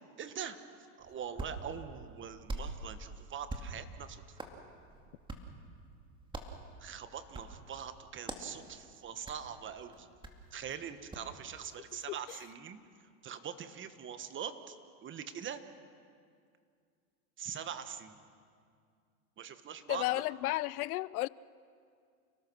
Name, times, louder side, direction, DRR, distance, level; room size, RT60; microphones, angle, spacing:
voice 1, 0.2-4.4 6.8-10.1 10.5-14.8 15.0-15.6 17.4-18.2 19.4-20.2, right 8 dB, 25° right, 1.4 m, -43 dB
Hands, 1.0-11.3, right 2 dB, 10° right, 2.3 m, -46 dB
voice 2, 19.9-21.3, left 18 dB, 80° left, 0.6 m, -33 dB
29.5 x 19.5 x 6.3 m
supercardioid pair, 125°, 43 cm